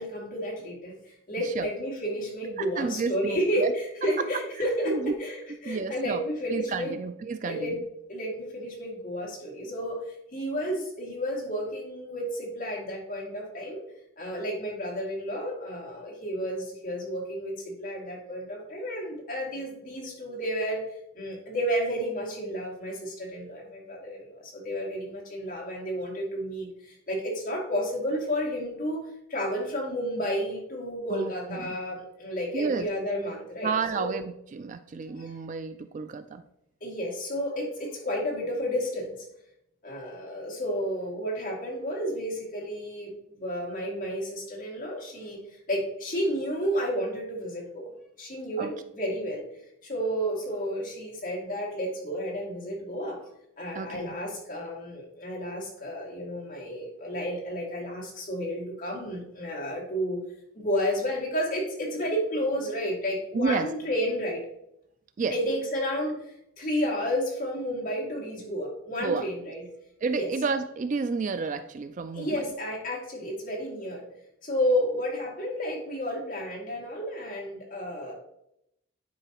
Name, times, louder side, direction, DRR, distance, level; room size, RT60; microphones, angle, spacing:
voice 1, 0.0-7.0 7.4-7.7 8.1-13.8 14.2-29.0 29.3-34.1 35.2-35.3 36.8-39.1 39.8-45.4 45.7-47.9 48.2-49.4 49.8-53.2 53.6-60.2 60.5-64.4 65.3-69.6 70.1-70.3 72.1-74.0 74.4-78.1, equal, 40° left, -3 dB, 2.3 m, -31 dB
voice 2, 2.6-3.7 4.0-4.1 4.9-5.1 5.6-6.2 6.5-7.8 31.1-31.3 31.6-31.8 32.5-32.9 33.6-36.4 48.6-48.7 53.8-54.2 63.3-63.7 65.2-65.3 69.0-69.6 70.0-72.3, right 4 dB, 35° right, 10 dB, 0.3 m, -31 dB
9.8 x 4.7 x 2.9 m, 0.78 s
head